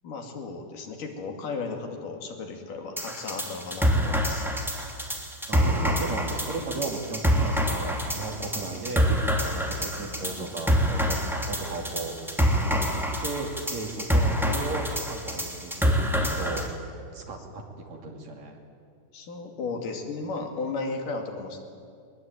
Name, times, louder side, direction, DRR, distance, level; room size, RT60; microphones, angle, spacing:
voice 1, 0.0-4.5 19.1-21.6, left 4 dB, 85° left, 3 dB, 4.2 m, -35 dB
sound 1, 3.0-16.7, equal, ahead, 2.3 m, -26 dB
voice 2, 5.5-16.6 17.1-18.6, right 3 dB, 60° right, 2 dB, 3.9 m, -35 dB
22.5 x 21.0 x 9.2 m, 2.3 s
omnidirectional pair, 3.6 m